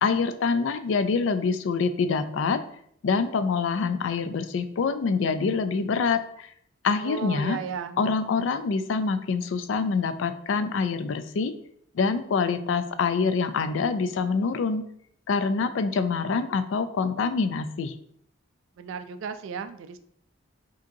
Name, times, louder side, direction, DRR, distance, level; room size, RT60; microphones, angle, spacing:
voice 1, 0.0-2.6 3.0-6.5 6.8-7.6 8.0-11.5 11.9-14.8 15.3-17.9, left 5 dB, 70° left, 11 dB, 0.3 m, -25 dB
voice 2, 7.0-8.0 18.8-20.0, right 6 dB, 75° right, 10 dB, 0.3 m, -34 dB
4.9 x 2.8 x 2.7 m, 0.68 s
head